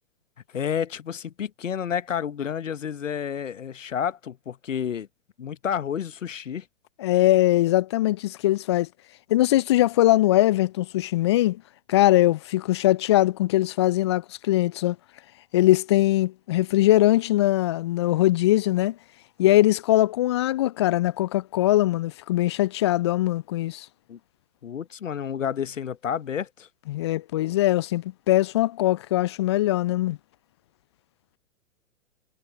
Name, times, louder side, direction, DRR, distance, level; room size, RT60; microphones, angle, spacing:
voice 1, 0.5-5.1 5.4-6.7 24.1-24.2 24.6-26.7, left 8 dB, 70° left, 1.1 m, -30 dB
voice 2, 7.0-8.9 9.3-11.6 11.9-15.0 15.5-19.0 19.4-23.9 26.9-30.2, left 15 dB, 25° left, 0.4 m, -21 dB
figure-of-eight pair, 110°, 39 cm